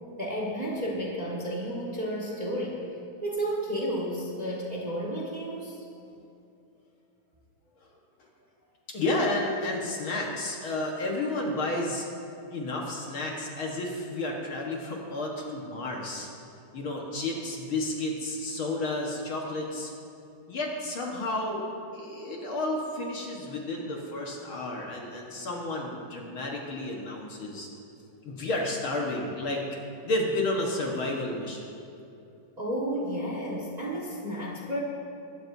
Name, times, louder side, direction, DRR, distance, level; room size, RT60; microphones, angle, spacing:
voice 1, 0.2-2.8 3.2-5.8 32.6-34.8, equal, 70° right, -3 dB, 0.4 m, -32 dB
voice 2, 8.9-12.0 12.5-16.3 16.7-19.9 20.5-21.6 21.9-27.7 28.2-29.6 30.0-31.7, left 2 dB, 50° left, -1 dB, 1.6 m, -31 dB
23.5 x 12.5 x 2.7 m, 2.7 s
omnidirectional pair, 3.9 m